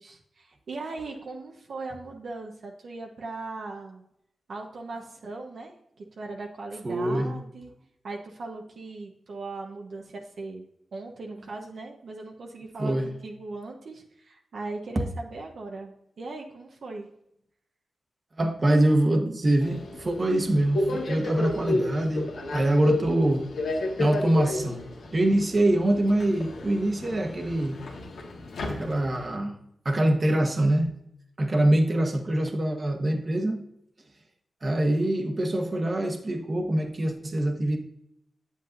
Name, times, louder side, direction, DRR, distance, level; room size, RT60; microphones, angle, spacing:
voice 1, 0.0-4.0 4.5-5.7 6.0-7.7 8.0-10.6 10.9-17.1, right 3 dB, 70° right, 0 dB, 1.1 m, -39 dB
voice 2, 6.8-7.3 12.8-13.1 18.4-23.5 24.0-24.8 25.1-27.8 28.6-29.6 29.8-30.9 31.4-33.6 34.6-37.8, right 1 dB, 40° right, 4 dB, 1.3 m, -24 dB
Subway metro underground, 19.6-29.4, left 2 dB, 85° left, 1.4 m, -32 dB
8.4 x 7.6 x 2.6 m, 0.77 s
cardioid pair, 55°, 0 cm